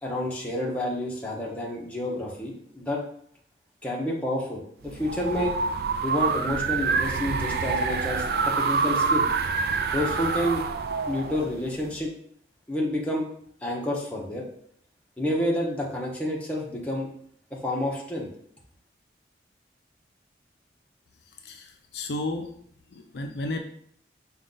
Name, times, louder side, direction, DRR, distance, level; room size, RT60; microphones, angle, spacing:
voice 1, 0.0-3.0 3.8-5.5 6.0-9.3 9.9-10.6 11.1-12.1 12.7-13.2 13.6-14.5 15.2-17.1 17.6-18.3, left 1 dB, 10° left, -4 dB, 0.7 m, -29 dB
sound 1, 4.8-12.0, right 5 dB, 55° right, 0.3 m, -27 dB
voice 2, 21.4-22.5 22.9-23.6, left 2 dB, 70° left, 4 dB, 0.5 m, -32 dB
5.0 x 2.3 x 3.8 m, 0.65 s
head